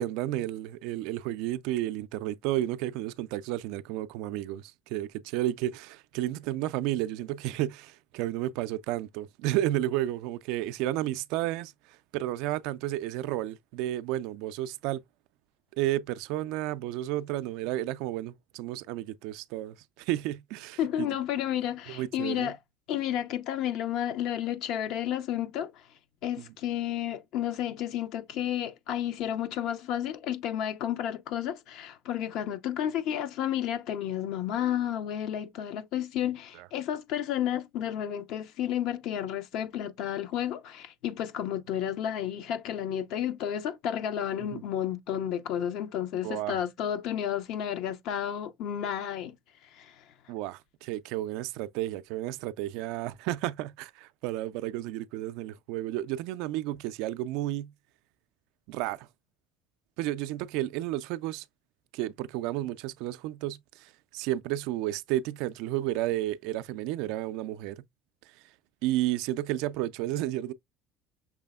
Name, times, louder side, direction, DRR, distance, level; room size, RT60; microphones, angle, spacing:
voice 1, 0.0-15.0 15.8-21.1 21.9-22.5 44.5-44.6 46.2-46.6 50.3-57.7 58.7-59.1 60.0-61.4 61.9-67.8 68.8-70.5, right 14 dB, 70° right, 0.3 m, -32 dB
voice 2, 20.8-22.6 22.9-25.9 26.2-49.4 49.7-50.0, left 10 dB, 65° left, 0.6 m, -31 dB
6.0 x 3.3 x 2.2 m
hypercardioid pair, 75°, 0 cm